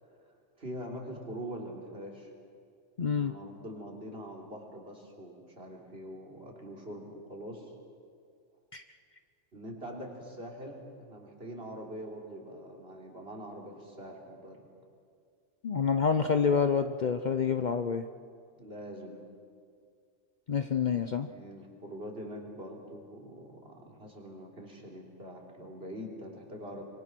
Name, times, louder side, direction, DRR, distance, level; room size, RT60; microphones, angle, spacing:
voice 1, 0.6-2.3 3.2-7.7 9.5-14.7 18.6-19.2 20.9-26.8, equal, 55° right, -1 dB, 3.7 m, -44 dB
voice 2, 3.0-3.3 8.7-8.8 15.6-18.0 20.5-21.3, left 6 dB, 45° left, 8 dB, 0.7 m, -27 dB
25.5 x 24.0 x 6.1 m, 2.2 s
omnidirectional pair, 1.2 m